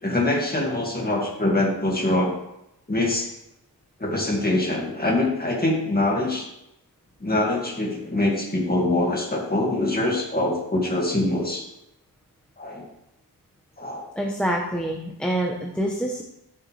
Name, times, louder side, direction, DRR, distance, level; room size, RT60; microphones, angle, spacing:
voice 1, 0.0-2.3 2.9-3.4 4.0-6.5 7.2-11.6 12.6-12.9 13.8-14.1, left 1 dB, 25° left, -1 dB, 2.2 m, -24 dB
voice 2, 14.2-16.2, right 1 dB, 5° left, -1 dB, 0.9 m, -26 dB
14.0 x 6.6 x 3.4 m, 0.83 s
wide cardioid pair, 160°, 40 cm